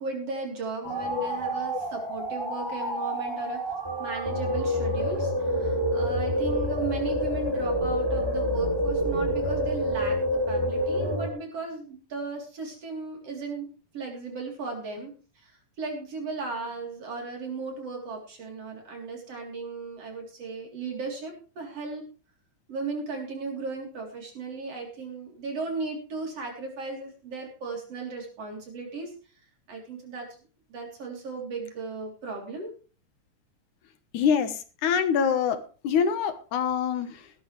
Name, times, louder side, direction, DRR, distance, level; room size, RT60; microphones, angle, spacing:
voice 1, 0.0-3.7 4.0-13.7 13.9-22.0 22.7-29.1 29.7-30.4 30.7-32.7, right 3 dB, 50° right, 1 dB, 4.4 m, -36 dB
sound 1, 0.8-11.3, equal, 10° right, 2.6 m, -28 dB
voice 2, 34.1-37.3, left 7 dB, 75° left, 10 dB, 2.5 m, -25 dB
17.0 x 12.5 x 3.3 m, 0.35 s
omnidirectional pair, 3.6 m